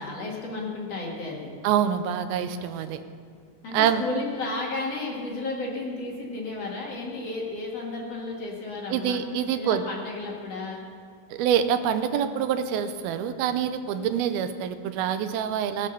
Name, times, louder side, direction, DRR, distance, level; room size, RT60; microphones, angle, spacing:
voice 1, 0.0-1.6 3.6-9.2 9.5-10.8, left 3 dB, 50° left, -2 dB, 2.6 m, -33 dB
voice 2, 1.6-3.0 3.7-4.0 8.9-9.8 11.3-15.9, right 9 dB, 85° right, 10 dB, 2.5 m, -26 dB
19.0 x 7.5 x 6.6 m, 2.1 s
omnidirectional pair, 4.3 m